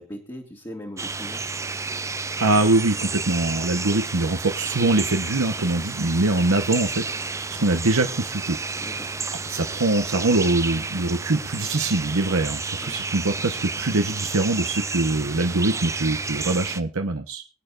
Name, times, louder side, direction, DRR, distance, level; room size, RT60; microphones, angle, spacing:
voice 1, 0.0-1.5 8.8-9.2 12.7-12.9, equal, 20° left, -3 dB, 1.8 m, -39 dB
sound 1, 1.0-16.8, right 4 dB, 15° right, 0.5 m, -31 dB
voice 2, 2.4-8.6 9.4-17.4, right 2 dB, 85° right, 5 dB, 1.1 m, -23 dB
23.5 x 9.1 x 2.5 m, 0.32 s
head